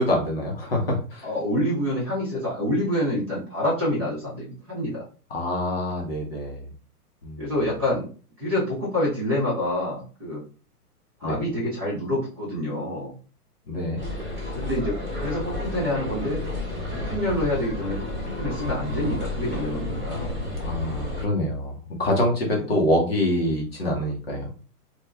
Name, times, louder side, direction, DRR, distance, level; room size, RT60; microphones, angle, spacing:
voice 1, 0.0-1.3 5.3-6.6 7.2-7.5 11.2-11.4 13.7-14.0 20.6-24.5, left 1 dB, 40° left, 0 dB, 0.8 m, -25 dB
voice 2, 1.2-5.0 7.4-8.0 8.4-10.4 11.2-13.1 14.5-16.4 16.9-17.9 18.2-20.4 22.4-22.6, left 1 dB, 15° right, -8 dB, 0.8 m, -27 dB
sound 1, 14.0-21.2, left 2 dB, 5° left, 1.4 m, -31 dB
3.0 x 2.2 x 3.3 m, 0.37 s
hypercardioid pair, 180°, 47 cm